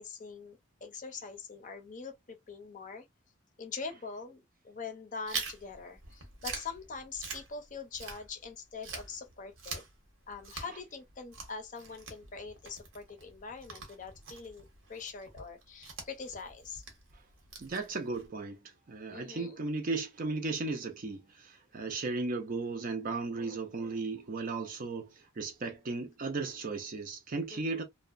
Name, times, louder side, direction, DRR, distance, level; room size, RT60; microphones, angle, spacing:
voice 1, 0.0-3.0 3.6-9.8 10.3-14.6 14.9-16.8 19.1-19.6 27.5-27.8, left 5 dB, 40° left, 0.5 m, -43 dB
Chewing mastication, 5.3-8.5 8.8-18.3, right 4 dB, 80° right, 1.0 m, -44 dB
voice 2, 17.6-18.6 18.9-27.8, right 3 dB, 45° right, 0.5 m, -36 dB
2.7 x 2.1 x 2.4 m
head